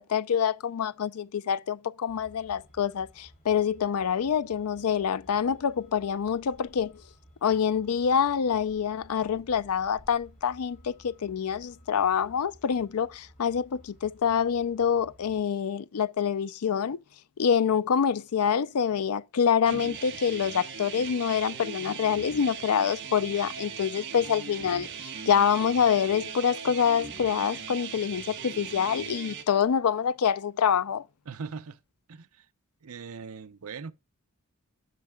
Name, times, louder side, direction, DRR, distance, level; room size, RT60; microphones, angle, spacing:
voice 1, 0.0-6.9 7.4-17.0 17.4-24.9 25.3-31.0, left 7 dB, 85° left, 0.5 m, -26 dB
Truck, 2.1-15.4, equal, 35° left, 3.2 m, -56 dB
sound 1, 19.7-29.4, right 6 dB, 55° right, 1.5 m, -39 dB
voice 2, 31.3-31.8 32.1-32.5 32.8-33.9, right 5 dB, 80° right, 0.7 m, -40 dB
10.5 x 6.5 x 2.3 m
head